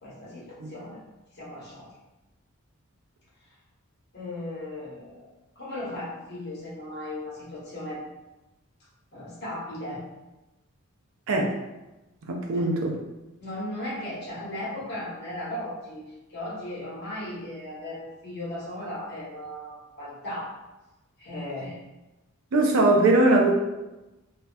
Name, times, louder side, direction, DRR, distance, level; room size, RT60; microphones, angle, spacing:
voice 1, 0.0-1.0 1.3-1.9 3.4-3.5 4.1-5.3 5.6-8.0 9.1-10.0 12.5-12.7 13.4-20.5 21.2-21.8, left 1 dB, 50° left, -7 dB, 0.9 m, -36 dB
voice 2, 12.3-12.9 22.5-23.5, right 2 dB, 65° right, 1 dB, 0.4 m, -21 dB
2.3 x 2.2 x 2.5 m, 1.0 s
head